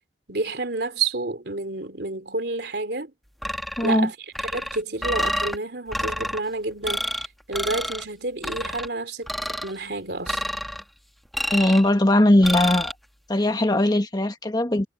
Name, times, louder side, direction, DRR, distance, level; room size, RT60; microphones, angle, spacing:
voice 1, 0.3-3.1 3.8-9.3 9.6-10.4, right 3 dB, 70° right, 3.1 m, -29 dB
sound 1, 3.4-4.0 4.3-5.6 5.9-6.4 6.8-7.3 7.5-8.0 8.4-8.9 9.3-9.7 10.3-10.8 11.3-11.9 12.4-12.9, equal, ahead, 1.9 m, -28 dB
voice 2, 3.8-4.1 11.5-12.9 13.3-14.9, left 1 dB, 25° left, 1.4 m, -19 dB
head